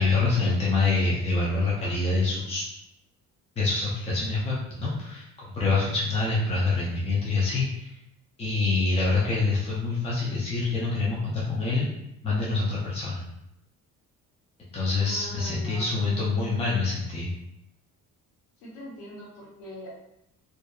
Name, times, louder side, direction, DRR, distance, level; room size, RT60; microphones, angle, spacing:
voice 1, 0.0-2.6 3.6-7.9 8.4-11.9 12.2-13.3 14.7-17.3, left 3 dB, 20° left, -6 dB, 0.5 m, -26 dB
voice 2, 15.0-16.2 18.6-19.9, left 1 dB, 90° left, -4 dB, 1.0 m, -42 dB
2.6 x 2.3 x 2.2 m, 0.84 s
cardioid pair, 120°, 33 cm